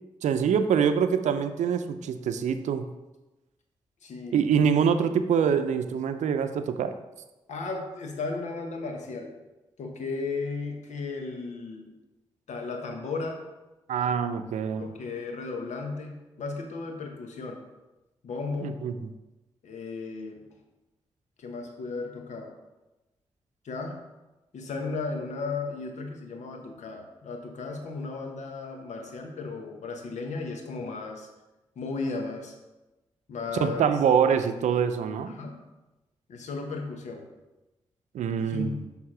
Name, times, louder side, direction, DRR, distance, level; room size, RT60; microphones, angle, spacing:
voice 1, 0.2-2.9 4.3-6.9 13.9-14.8 18.6-19.1 33.6-35.3 38.1-38.8, right 7 dB, 75° right, 10 dB, 0.5 m, -25 dB
voice 2, 4.0-4.4 7.5-9.3 9.8-11.9 12.5-13.4 14.8-17.6 18.2-18.9 19.6-20.4 21.4-22.6 23.6-24.0 24.5-31.3 31.7-32.5 33.3-33.8 35.3-35.6 36.3-37.3 38.4-38.9, left 4 dB, 75° left, 3 dB, 1.2 m, -35 dB
6.4 x 3.6 x 6.0 m, 1.1 s
supercardioid pair, 45°, 12 cm